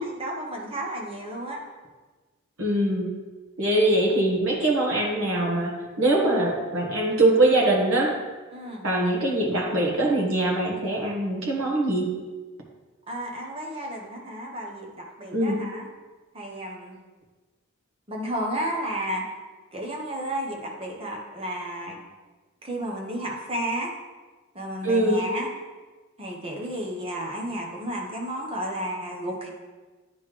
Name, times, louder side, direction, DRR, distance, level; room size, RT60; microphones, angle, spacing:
voice 1, 0.0-1.6 8.5-8.9 13.1-15.9 16.3-17.0 18.1-19.3 19.7-22.0 22.6-23.9 24.5-25.5 26.2-29.5, right 1 dB, 25° right, -1 dB, 1.0 m, -32 dB
voice 2, 2.6-3.1 3.6-8.1 8.8-12.1 15.3-15.6 24.8-25.2, right 1 dB, 70° right, -1 dB, 1.3 m, -23 dB
10.0 x 3.9 x 3.2 m, 1.3 s
head